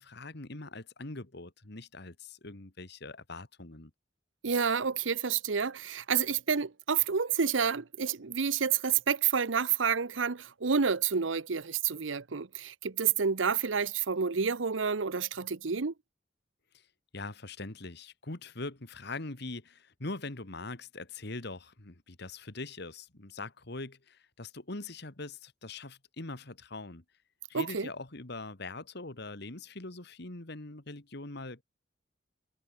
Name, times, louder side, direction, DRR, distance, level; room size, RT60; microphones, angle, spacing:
voice 1, 0.0-3.9 17.1-27.0 27.5-31.6, left 2 dB, 60° left, 2.1 m, -42 dB
voice 2, 4.4-15.9 27.5-27.9, right 6 dB, 80° right, 0.9 m, -29 dB
head